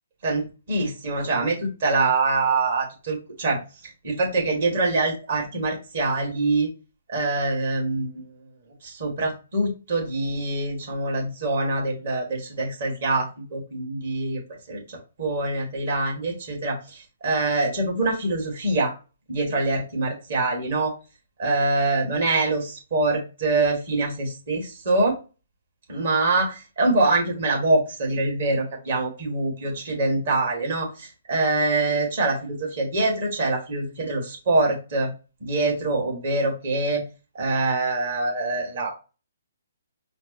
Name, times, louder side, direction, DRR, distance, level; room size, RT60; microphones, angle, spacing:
voice 1, 0.2-3.6 4.0-6.7 7.1-8.1 8.8-14.4 14.7-18.9 19.3-20.9 21.4-25.1 25.9-35.1 35.4-37.0 37.3-38.9, right 2 dB, 55° right, -1 dB, 2.0 m, -24 dB
4.3 x 2.0 x 3.1 m, 0.32 s
figure-of-eight pair, 130°, 0 cm